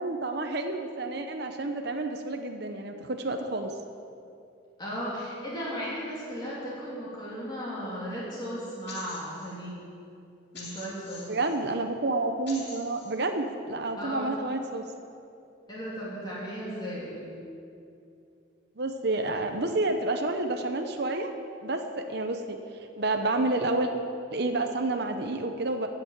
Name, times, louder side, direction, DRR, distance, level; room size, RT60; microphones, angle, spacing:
voice 1, 0.0-3.7 11.3-14.8 18.8-21.3 21.6-22.6 23.0-23.9 24.3-25.9, right 2 dB, 55° right, 5 dB, 0.9 m, -29 dB
voice 2, 4.8-9.8 10.5-11.3 14.0-14.4 15.7-17.3, equal, 20° left, -8 dB, 3.2 m, -36 dB
sound 1, 8.9-9.5 10.5-11.6 12.5-13.1, left 3 dB, 55° left, 2.4 m, -44 dB
15.0 x 7.0 x 8.8 m, 2.5 s
head